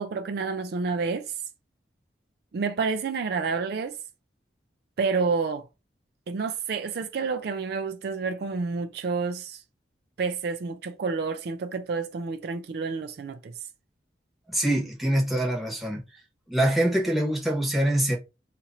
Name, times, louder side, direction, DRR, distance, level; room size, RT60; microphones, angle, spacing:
voice 1, 0.0-1.3 2.5-4.0 5.0-5.6 6.3-9.6 10.2-13.5, right 4 dB, 60° right, 0.4 m, -29 dB
voice 2, 14.5-16.0 16.5-18.2, right 1 dB, ahead, 1.1 m, -24 dB
2.9 x 2.5 x 4.0 m
head